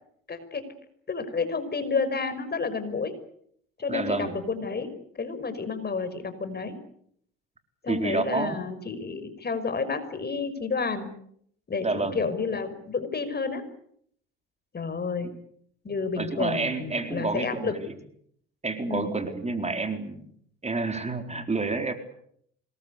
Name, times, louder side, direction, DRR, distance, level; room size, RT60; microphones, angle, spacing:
voice 1, 0.3-0.6 1.1-3.1 3.8-6.8 7.8-11.1 11.7-13.7 14.7-15.3 15.8-17.8 18.9-19.1, left 4 dB, 30° left, 11 dB, 5.6 m, -30 dB
voice 2, 3.9-4.4 7.9-8.6 11.8-12.2 15.2-15.3 16.2-17.9 18.6-20.2 20.6-21.9, right 3 dB, 20° right, 6 dB, 4.2 m, -29 dB
25.5 x 21.5 x 8.4 m, 0.68 s
supercardioid pair, 75°, 30 cm